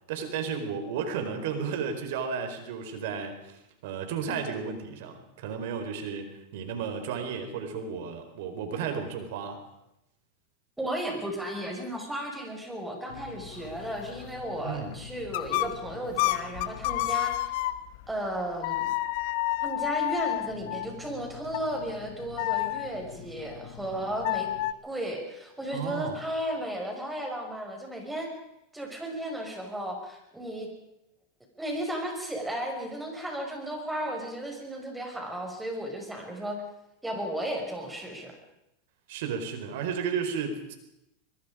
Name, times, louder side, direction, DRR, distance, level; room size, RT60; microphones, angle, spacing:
voice 1, 0.1-9.6 14.6-15.0 25.7-26.2 39.1-40.8, right 6 dB, 70° right, 6 dB, 4.7 m, -33 dB
voice 2, 10.8-17.4 18.1-18.9 19.6-24.5 24.8-28.3 28.7-30.7 31.6-36.6 37.0-38.3, right 1 dB, 5° right, 2 dB, 6.1 m, -34 dB
sound 1, 13.1-18.1 18.6-24.7, left 16 dB, 65° left, 1.2 m, -32 dB
24.5 x 21.5 x 5.2 m, 0.86 s
supercardioid pair, 130°, 0 cm